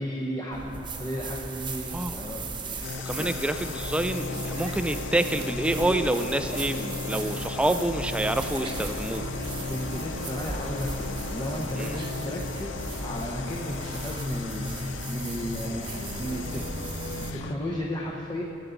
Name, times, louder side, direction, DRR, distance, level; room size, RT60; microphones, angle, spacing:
voice 1, 0.0-3.3 9.7-12.8 13.0-16.6 17.1-18.4, equal, 20° left, -2 dB, 0.8 m, -34 dB
sound 1, 0.5-17.3, right 3 dB, 25° right, 0.9 m, -37 dB
sound 2, 2.8-17.6, left 4 dB, 75° left, 0.5 m, -36 dB
voice 2, 3.0-9.3 11.8-12.0, right 1 dB, 5° right, 9 dB, 0.3 m, -27 dB
18.0 x 7.9 x 3.9 m, 2.8 s
head